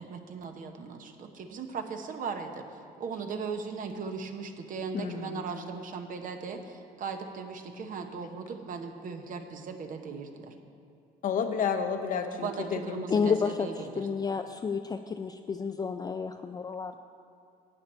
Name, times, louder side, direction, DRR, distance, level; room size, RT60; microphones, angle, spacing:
voice 1, 0.0-2.7 3.0-10.5 12.3-14.1, right 5 dB, 55° right, 5 dB, 1.0 m, -38 dB
voice 2, 4.9-5.5 11.2-13.3, left 6 dB, 55° left, 7 dB, 0.9 m, -31 dB
voice 3, 13.1-17.0, left 5 dB, 25° left, 6 dB, 0.3 m, -30 dB
11.5 x 8.7 x 4.4 m, 2.5 s
cardioid pair, 110°, 17 cm